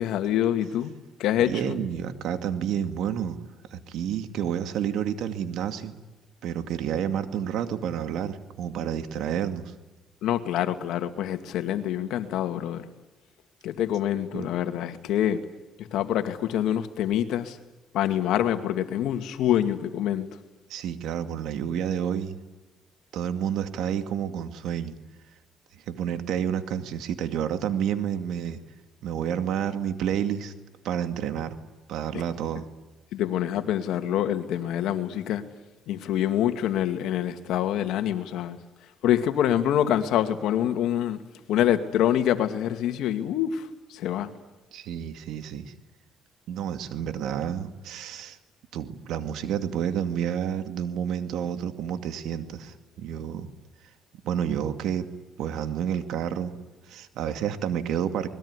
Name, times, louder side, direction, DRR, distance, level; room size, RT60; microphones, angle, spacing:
voice 1, 0.0-1.8 10.2-12.8 13.6-15.4 15.8-17.6 17.9-20.3 33.1-35.4 35.9-38.6 39.0-41.2 41.5-44.3, left 11 dB, 80° left, 8 dB, 2.3 m, -26 dB
voice 2, 1.4-3.4 3.7-5.9 6.4-9.6 14.3-14.5 20.7-22.4 23.1-24.9 25.9-28.6 29.0-30.5 30.8-31.6 31.9-32.7 44.7-45.7 46.5-48.4 48.7-53.5 54.2-55.1 55.4-56.5 56.9-58.3, right 9 dB, 80° right, 9 dB, 2.4 m, -29 dB
26.5 x 21.0 x 9.8 m, 1.1 s
cardioid pair, 85°, 0 cm